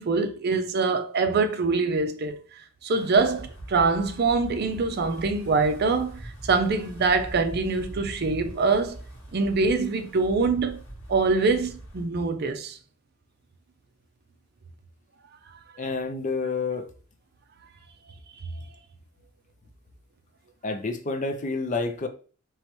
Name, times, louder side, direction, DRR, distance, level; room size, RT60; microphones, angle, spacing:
voice 1, 0.0-2.4 2.8-6.2 6.5-9.0 9.3-10.8 11.1-12.8, right 4 dB, 50° right, 0.5 m, -24 dB
Wind, 2.9-12.1, right 1 dB, 70° left, 1.6 m, -42 dB
voice 2, 15.8-16.9 20.6-22.1, left 3 dB, 40° left, 0.5 m, -29 dB
4.6 x 3.1 x 3.0 m
head